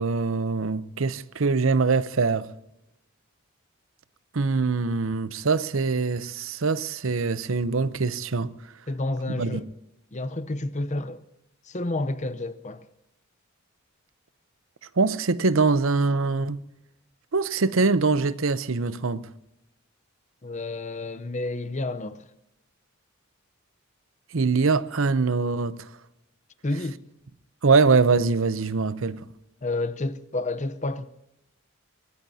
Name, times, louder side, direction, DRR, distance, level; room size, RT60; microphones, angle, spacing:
voice 1, 0.0-2.5 4.3-8.5 9.3-9.6 15.0-16.6 17.3-19.3 24.3-25.8 27.6-29.2, right 4 dB, 70° right, 0.7 m, -23 dB
voice 2, 8.9-9.7 10.1-11.2 11.7-12.8 20.4-22.2 26.6-27.0 29.6-31.1, left 2 dB, 35° left, 0.8 m, -30 dB
23.5 x 18.5 x 2.8 m
head